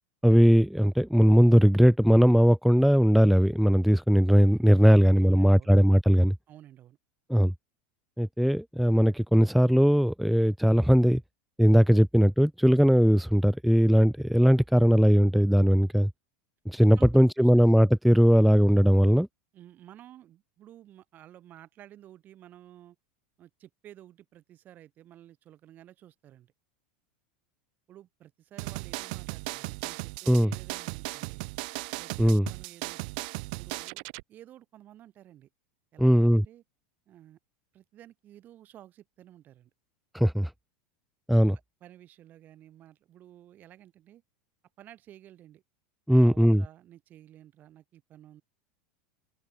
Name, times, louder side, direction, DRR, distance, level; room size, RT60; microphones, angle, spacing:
voice 1, 0.2-6.4 7.3-7.5 8.2-11.2 11.6-16.1 16.7-19.3 30.3-30.5 32.2-32.5 36.0-36.5 40.1-40.5 41.3-41.6 46.1-46.6, equal, ahead, 0.4 m, -20 dB
voice 2, 4.9-5.7 6.5-7.0 17.0-17.5 19.5-23.0 23.4-26.5 27.9-31.5 32.0-33.1 33.5-35.5 35.9-36.6 37.1-37.4 37.7-39.7 41.8-44.2 44.8-45.6 46.1-48.4, right 12 dB, 35° right, 7.1 m, -52 dB
sound 1, 28.6-34.2, right 29 dB, 65° right, 1.0 m, -37 dB
supercardioid pair, 125°, 5 cm